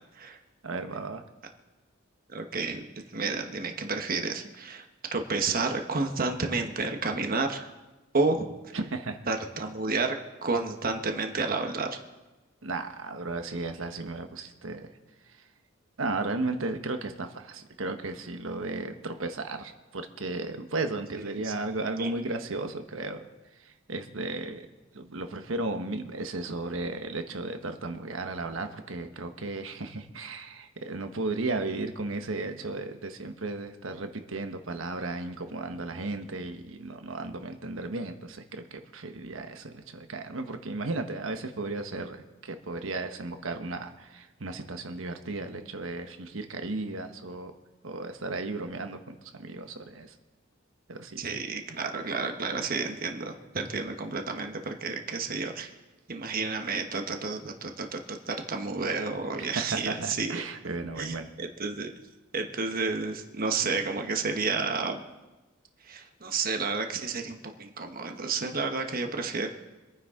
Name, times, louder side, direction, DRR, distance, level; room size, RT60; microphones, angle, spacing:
voice 1, 0.6-1.2 8.7-9.2 12.6-14.9 15.4-15.5 16.0-23.2 23.6-24.7 24.9-47.5 47.8-50.1 50.9-51.4 59.4-61.3, right 2 dB, 85° right, 7 dB, 1.2 m, -35 dB
voice 2, 2.3-2.8 3.1-4.8 5.1-7.7 8.1-8.8 9.3-10.2 10.4-11.9 21.2-21.5 22.0-22.1 51.2-55.7 56.1-60.4 61.0-61.9 62.3-65.0 65.8-69.5, right 4 dB, 50° right, 5 dB, 1.1 m, -31 dB
25.0 x 9.7 x 3.7 m, 1.1 s
head